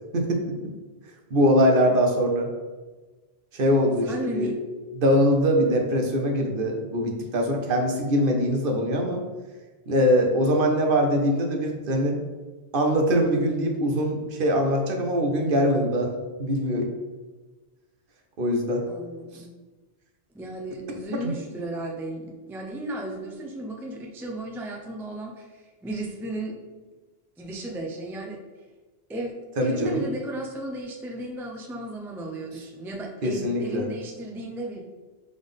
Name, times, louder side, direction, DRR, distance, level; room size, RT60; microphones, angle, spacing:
voice 1, 1.3-2.5 3.5-4.5 4.9-9.2 9.9-12.2 12.7-16.1 16.4-16.9 18.4-18.8 21.2-21.3 29.6-30.0 33.2-33.9, equal, 55° right, 2 dB, 0.8 m, -22 dB
voice 2, 4.0-4.6 18.9-19.5 20.3-26.5 27.4-28.4 29.1-34.8, right 1 dB, 5° right, -1 dB, 0.3 m, -34 dB
3.8 x 3.5 x 3.6 m, 1.3 s
omnidirectional pair, 1.1 m